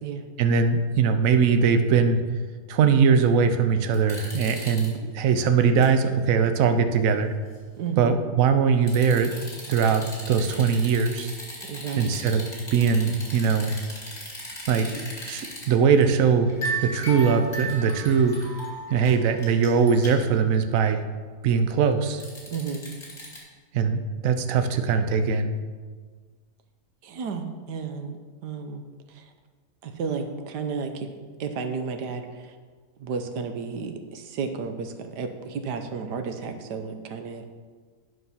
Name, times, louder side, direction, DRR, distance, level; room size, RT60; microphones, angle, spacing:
voice 1, 0.4-2.2 2.7-7.3 8.0-9.3 9.7-11.3 12.0-13.8 14.7-14.9 15.2-16.5 16.8-18.4 18.9-21.0 21.4-22.2 23.7-25.5, right 6 dB, 65° right, 8 dB, 1.0 m, -21 dB
sound 1, 3.9-4.9 5.4-5.9 6.3-6.4 8.9-15.7 16.0-16.1 16.5-20.3 22.2-23.4, right 1 dB, 25° left, 2.5 m, -36 dB
voice 2, 7.8-8.1 11.6-12.2 22.5-22.9 27.0-28.2 28.4-28.8 29.1-29.2 29.8-31.1 31.4-32.5 33.0-37.4, right 5 dB, 80° right, 7 dB, 1.4 m, -32 dB
9.5 x 5.5 x 5.7 m, 1.5 s
omnidirectional pair, 1.8 m